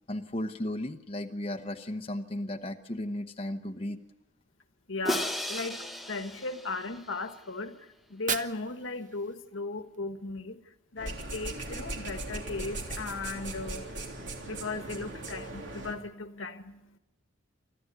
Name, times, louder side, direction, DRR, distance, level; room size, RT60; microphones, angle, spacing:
voice 1, 0.1-4.0, left 1 dB, 30° left, 0.9 m, -35 dB
voice 2, 4.9-5.8 6.1-10.6 10.9-13.9 14.4-17.0, left 3 dB, 75° left, 1.4 m, -37 dB
Crash cymbal, 5.1-7.3, left 1 dB, ahead, 1.0 m, -35 dB
Fire, 8.0-10.0, right 7 dB, 40° right, 0.9 m, -38 dB
sound 1, 11.0-15.9, right 2 dB, 65° right, 3.5 m, -39 dB
24.5 x 14.5 x 9.3 m
head